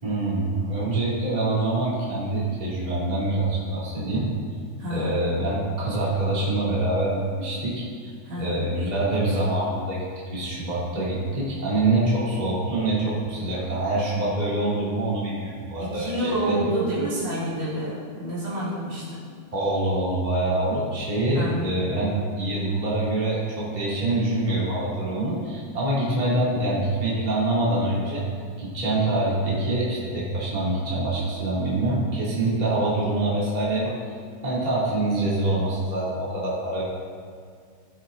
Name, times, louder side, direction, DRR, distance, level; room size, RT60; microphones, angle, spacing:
voice 1, 0.0-4.3 4.9-10.0 10.3-16.6 19.5-22.1 22.4-28.2 28.6-33.9 34.4-36.8, right 2 dB, 15° right, -8 dB, 2.7 m, -25 dB
voice 2, 4.8-5.3 8.2-8.7 15.8-19.2 21.3-21.7, right 1 dB, 65° right, -8 dB, 4.1 m, -28 dB
16.5 x 7.4 x 3.9 m, 2.1 s
omnidirectional pair, 3.3 m